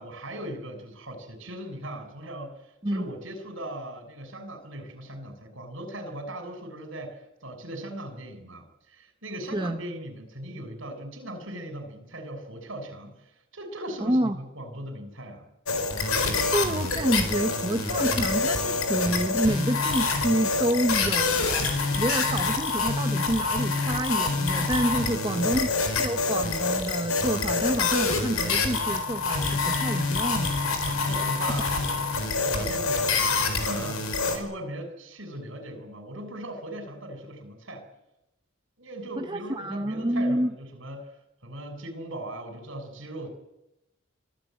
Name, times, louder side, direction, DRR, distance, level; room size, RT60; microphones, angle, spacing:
voice 1, 0.0-15.4 25.1-25.7 30.9-32.1 32.4-34.1 34.3-37.9 38.8-41.2 41.4-43.3, right 1 dB, 65° right, 7 dB, 6.3 m, -39 dB
voice 2, 14.0-14.4 16.3-21.4 21.9-30.6 31.6-31.7 39.2-40.5, right 1 dB, 20° right, 6 dB, 0.8 m, -28 dB
sound 1, 15.7-34.4, left 4 dB, 80° left, 4.4 m, -26 dB
26.0 x 16.5 x 9.2 m, 0.90 s
head